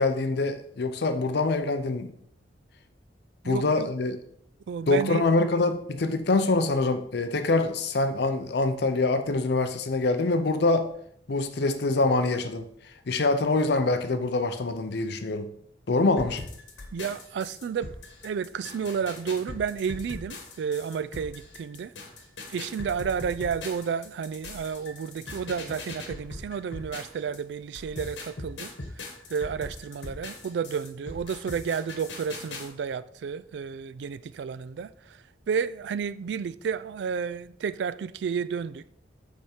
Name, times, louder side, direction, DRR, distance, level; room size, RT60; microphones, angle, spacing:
voice 1, 0.0-2.1 3.4-4.2 4.9-10.9 11.3-12.7 13.1-15.5 15.9-16.5, left 3 dB, 60° left, 0.6 m, -25 dB
voice 2, 3.4-3.9 4.7-5.3 16.9-17.9 18.2-21.9 22.5-28.7 29.3-38.8, right 6 dB, 70° right, 0.3 m, -31 dB
sound 1, 16.2-27.4 27.7-32.7, left 2 dB, 80° left, 1.4 m, -40 dB
8.3 x 3.6 x 4.4 m
head